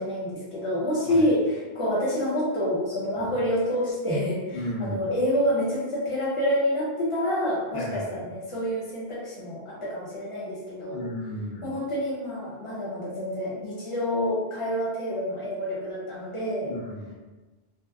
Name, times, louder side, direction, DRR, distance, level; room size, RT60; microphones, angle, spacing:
voice 1, 0.0-11.0 11.6-16.7, equal, 35° left, -7 dB, 0.8 m, -27 dB
voice 2, 4.5-5.2 7.7-8.2 10.9-11.7 16.6-17.1, equal, 85° left, -5 dB, 0.9 m, -34 dB
2.7 x 2.1 x 2.3 m, 1.2 s
omnidirectional pair, 1.0 m